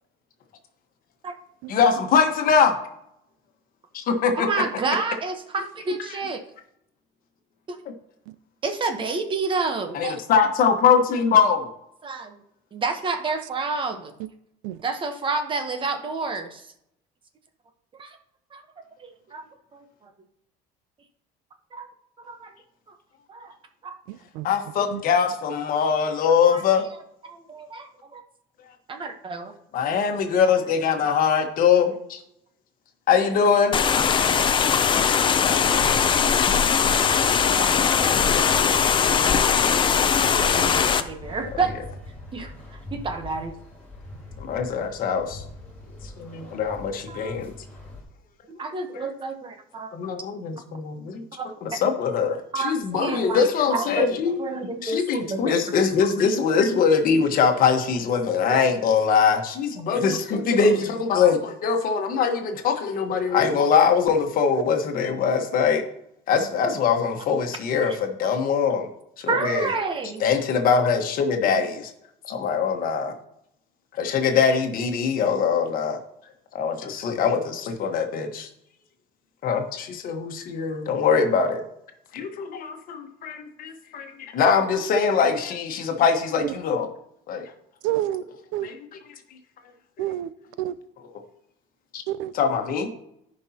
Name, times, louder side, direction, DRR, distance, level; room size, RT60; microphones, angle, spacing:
voice 1, 1.7-2.8 3.9-4.5 9.9-11.7 24.4-26.9 29.7-32.2 33.1-33.8 39.7-40.7 44.4-45.4 46.2-47.5 48.9-49.1 49.9-51.2 51.6-54.3 54.8-65.8 66.3-68.9 69.2-69.7 70.2-71.9 72.2-73.1 73.9-76.0 76.5-78.5 79.4-81.6 82.1-86.9 87.3-87.5 88.6-88.8 91.9-92.0 92.3-92.9, left 6 dB, 50° left, 1.4 m, -22 dB
voice 2, 4.4-6.4 7.7-7.8 8.6-10.2 12.0-12.4 12.7-14.1 14.8-16.7 18.0-18.2 18.5-18.6 19.0-19.4 19.7-19.8 21.7-21.9 22.2-22.5 23.3-23.5 23.8-23.9 26.5-26.6 27.2-28.2 28.9-29.5 36.6-37.1 37.4-37.7 40.3-41.8 42.3-42.5 42.9-43.6 46.6-46.7 47.1-47.4 48.5-49.9 51.4-51.5 52.5-54.1 54.4-55.6 58.5-58.7 67.8-68.0 69.3-70.3, right 4 dB, 25° right, 1.1 m, -29 dB
voice 3, 24.1-24.5 24.9-25.0 86.4-86.5 87.8-88.2 88.5-88.7 90.0-90.3 90.6-90.8 92.1-92.3, right 13 dB, 85° right, 0.5 m, -28 dB
sound 1, 33.7-41.0, left 7 dB, 25° left, 0.5 m, -20 dB
sound 2, 35.4-48.0, left 2 dB, 5° left, 3.8 m, -41 dB
14.5 x 5.4 x 2.9 m
cardioid pair, 150°, 19 cm